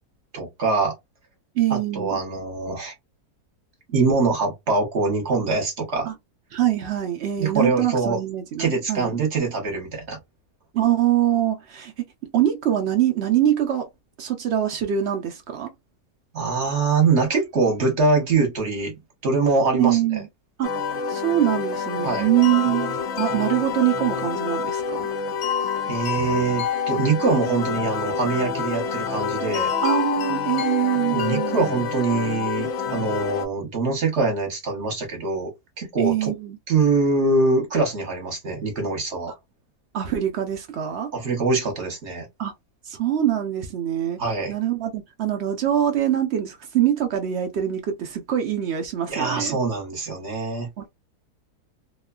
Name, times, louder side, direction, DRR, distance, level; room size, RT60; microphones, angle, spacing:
voice 1, 0.3-0.9 1.7-2.9 3.9-6.1 7.4-8.2 8.6-10.2 16.3-18.9 19.2-20.2 22.0-22.3 25.9-29.7 31.1-35.5 35.8-36.3 36.7-39.3 41.1-42.3 44.2-44.5 49.1-50.7, right 3 dB, 50° right, 1.0 m, -23 dB
voice 2, 1.6-2.2 6.1-6.2 6.5-9.2 10.7-11.9 12.3-13.9 14.2-15.7 19.7-20.3 20.6-20.7 21.1-25.1 29.8-31.7 36.0-36.6 39.9-41.1 42.4-42.5 42.8-44.2 44.5-49.6 50.8-50.9, right 11 dB, 85° right, 0.5 m, -24 dB
sound 1, 20.6-33.4, left 6 dB, 65° left, 0.6 m, -27 dB
2.9 x 2.1 x 2.3 m
omnidirectional pair, 1.7 m